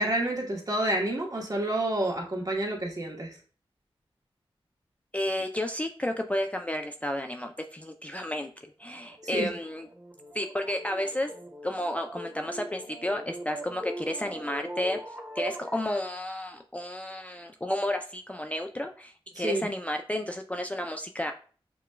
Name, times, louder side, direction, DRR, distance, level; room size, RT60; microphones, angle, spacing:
voice 1, 0.0-3.3 9.3-9.5 19.4-19.7, right 1 dB, 40° right, 0 dB, 1.1 m, -28 dB
voice 2, 5.1-8.5 8.8-9.9 10.3-11.3 11.6-15.0 15.4-21.3, left 1 dB, 15° left, 4 dB, 0.3 m, -32 dB
sound 1, 8.8-16.2, right 1 dB, 15° right, 1.2 m, -41 dB
5.8 x 2.2 x 2.2 m, 0.41 s
cardioid pair, 50°, 10 cm